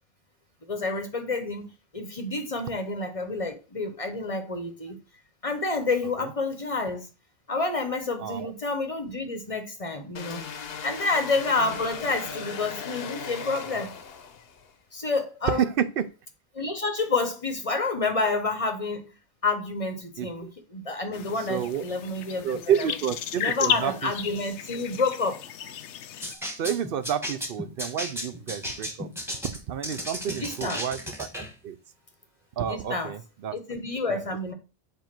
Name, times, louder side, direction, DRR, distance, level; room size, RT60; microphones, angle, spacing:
voice 1, 0.7-5.0 5.4-7.1 7.5-10.4 10.8-13.9 14.9-15.6 16.5-19.1 19.4-22.6 23.4-25.4 30.3-30.8 32.7-33.1 33.5-34.5, left 3 dB, 35° left, 0.8 m, -29 dB
voice 2, 8.2-8.5 15.5-16.1 20.2-20.5 21.4-21.8 22.4-24.1 26.3-29.1 29.7-31.8 32.6-33.6 34.1-34.2, right 9 dB, 60° right, 0.7 m, -30 dB
sound 1, 10.2-14.7, left 6 dB, 65° left, 1.0 m, -37 dB
sound 2, 21.1-26.3, left 9 dB, 90° left, 0.9 m, -34 dB
sound 3, 26.2-31.5, equal, ahead, 1.3 m, -35 dB
7.6 x 2.6 x 5.8 m
omnidirectional pair, 1.2 m